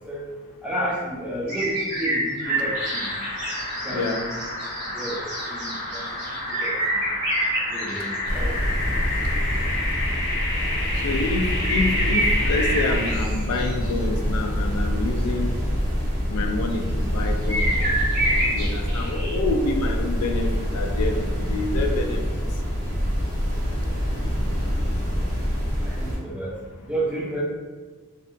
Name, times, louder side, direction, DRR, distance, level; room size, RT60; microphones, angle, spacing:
voice 1, 0.6-3.1 3.8-4.4 4.9-5.2 5.5-6.1 6.5-7.0 7.7-8.7 25.8-26.5 26.9-27.4, right 1 dB, 5° right, -4 dB, 0.4 m, -31 dB
sound 1, 1.5-8.4 11.6-13.9 17.5-19.4, right 1 dB, 60° right, 1.3 m, -27 dB
sound 2, 2.4-13.1, left 2 dB, 35° left, 0.8 m, -30 dB
sound 3, 8.3-26.2, equal, 75° right, 0.8 m, -25 dB
voice 2, 11.0-15.5 16.3-17.7 18.5-22.2, left 3 dB, 85° left, 4 dB, 0.3 m, -27 dB
2.7 x 2.2 x 2.6 m, 1.4 s
head